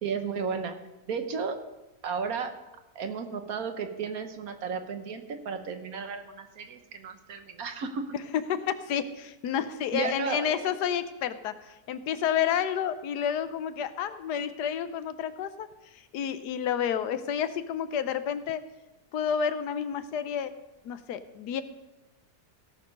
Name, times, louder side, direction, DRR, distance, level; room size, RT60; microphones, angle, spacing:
voice 1, 0.0-0.8 1.1-1.6 2.0-2.5 2.9-8.1 9.9-10.6, right 5 dB, 65° right, 7 dB, 1.4 m, -33 dB
voice 2, 8.5-18.6 19.1-20.5 20.8-21.6, left 8 dB, 90° left, 12 dB, 1.3 m, -30 dB
17.0 x 6.7 x 5.3 m, 1.0 s
omnidirectional pair, 1.7 m